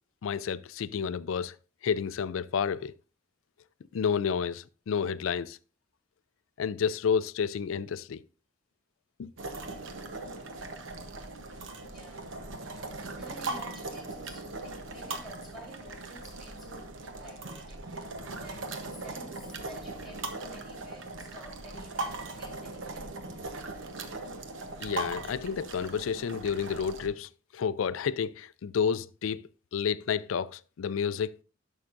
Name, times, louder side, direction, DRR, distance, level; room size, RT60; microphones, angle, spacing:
voice 1, 0.2-1.6 1.8-2.9 3.9-5.6 6.6-8.2 9.2-9.3 24.8-29.4 29.7-31.4, left 7 dB, 85° left, 0.4 m, -30 dB
sound 1, 9.4-27.1, right 2 dB, 75° right, 1.0 m, -39 dB
voice 2, 11.8-17.9 18.3-23.1, left 1 dB, ahead, 2.3 m, -52 dB
11.5 x 6.3 x 2.5 m
head